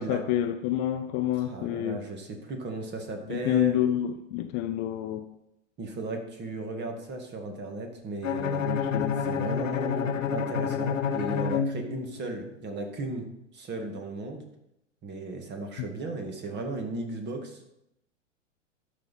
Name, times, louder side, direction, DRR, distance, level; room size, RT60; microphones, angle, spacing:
voice 1, 0.0-2.0 3.3-5.3 8.6-9.2, left 11 dB, 35° left, 8 dB, 0.6 m, -28 dB
voice 2, 1.3-3.8 5.8-8.6 9.2-13.3 13.5-14.4 15.0-17.6, right 2 dB, 25° right, 3 dB, 2.0 m, -35 dB
Bowed string instrument, 8.2-12.4, left 7 dB, 80° left, 1.0 m, -29 dB
12.5 x 5.7 x 4.2 m, 0.83 s
hypercardioid pair, 110°, 38 cm